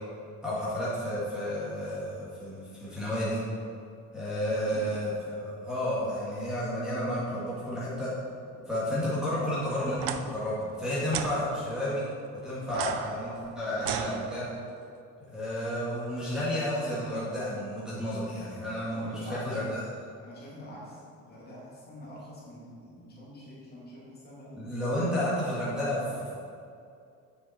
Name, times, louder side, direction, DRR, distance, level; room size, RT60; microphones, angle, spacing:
voice 1, 0.4-3.4 4.1-8.1 8.7-12.0 12.4-14.5 15.3-19.8 24.6-26.3, left 1 dB, ahead, -10 dB, 1.9 m, -31 dB
voice 2, 4.5-4.8 8.5-8.6 18.9-19.6 20.2-24.6, equal, 30° left, -6 dB, 2.1 m, -46 dB
sound 1, 9.9-10.2 11.1-11.3 12.7-14.7, right 10 dB, 85° right, 0.6 m, -35 dB
8.1 x 6.5 x 4.3 m, 2.5 s
cardioid pair, 160°, 32 cm